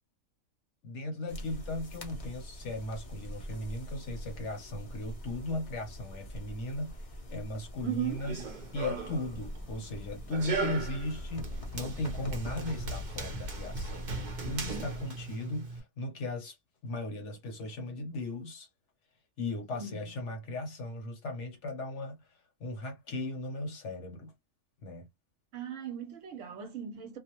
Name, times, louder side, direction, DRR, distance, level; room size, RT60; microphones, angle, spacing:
voice 1, 0.8-8.4 8.7-16.6 16.8-18.7 19.4-24.3 24.8-25.1, left 2 dB, 60° left, 0.9 m, -37 dB
sound 1, 1.3-15.0, equal, 40° left, 0.5 m, -43 dB
voice 2, 7.8-8.2 19.7-20.0 25.5-27.2, right 9 dB, 65° right, 0.9 m, -37 dB
Run, 8.1-15.8, right 3 dB, 50° right, 0.6 m, -38 dB
2.5 x 2.1 x 2.8 m
omnidirectional pair, 1.5 m